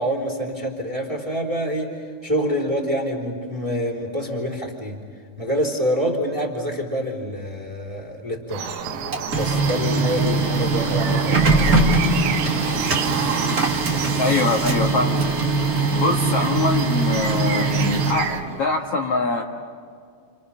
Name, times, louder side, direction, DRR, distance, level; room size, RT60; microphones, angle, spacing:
voice 1, 0.0-5.0 5.4-8.8 9.3-11.9, equal, 10° right, 0 dB, 3.0 m, -26 dB
sound 1, 8.5-18.4, right 8 dB, 85° right, 3.2 m, -31 dB
Printer, 8.8-18.6, right 3 dB, 30° right, 1.7 m, -22 dB
voice 2, 14.2-15.3 15.7-19.4, left 3 dB, 50° left, 0 dB, 1.9 m, -23 dB
30.0 x 29.5 x 5.8 m, 2.1 s
omnidirectional pair, 4.5 m